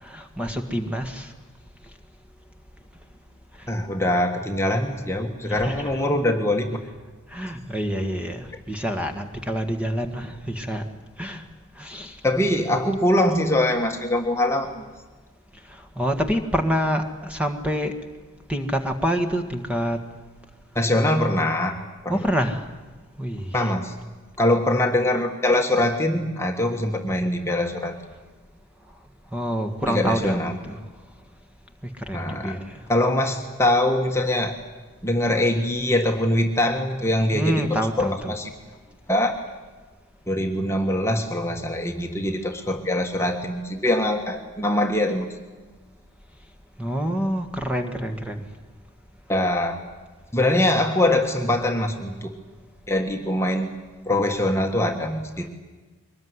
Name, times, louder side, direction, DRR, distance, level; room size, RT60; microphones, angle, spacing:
voice 1, 0.0-1.3 3.6-3.7 5.5-6.0 7.3-10.9 11.2-11.4 11.8-12.2 15.7-17.9 18.5-20.0 22.1-22.7 23.2-23.7 29.3-30.9 31.8-32.9 37.3-38.4 46.8-48.4, equal, 5° right, 5 dB, 1.7 m, -27 dB
voice 2, 3.7-6.8 12.2-14.9 20.7-21.8 22.0-22.3 23.5-23.9 24.4-27.9 29.9-30.5 32.1-32.6 32.9-34.6 35.0-38.5 39.1-39.4 40.3-45.3 49.3-49.8 50.3-52.3 52.9-53.7 54.0-55.5, left 1 dB, 10° left, 3 dB, 1.6 m, -23 dB
23.5 x 20.0 x 9.7 m, 1.3 s
head